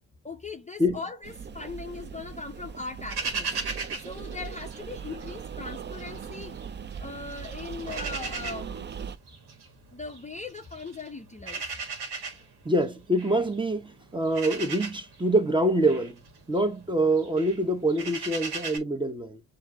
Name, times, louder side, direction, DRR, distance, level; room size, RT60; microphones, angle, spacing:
voice 1, 0.2-3.5 4.0-6.6 7.0-8.9 9.9-11.6, left 4 dB, 20° left, 0.5 m, -39 dB
sound 1, 1.2-9.2, right 7 dB, 30° right, 0.4 m, -39 dB
sound 2, 3.1-5.4 5.7-7.0 7.3-18.8, right 4 dB, 70° right, 1.6 m, -38 dB
voice 2, 12.6-16.2 16.5-19.4, right 1 dB, 10° right, 0.9 m, -25 dB
7.1 x 2.7 x 2.2 m
supercardioid pair, 55°, 40 cm